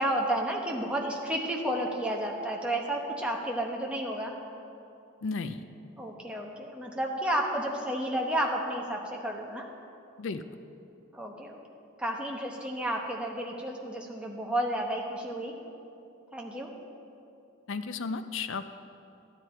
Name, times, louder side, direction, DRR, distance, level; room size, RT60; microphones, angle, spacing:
voice 1, 0.0-4.3 6.0-9.7 11.1-11.6 12.0-15.5 16.3-16.7, right 1 dB, 5° right, -1 dB, 1.0 m, -31 dB
voice 2, 5.2-5.6 10.2-10.4 17.7-18.6, left 4 dB, 60° left, 11 dB, 0.5 m, -33 dB
13.0 x 10.0 x 4.4 m, 2.8 s
head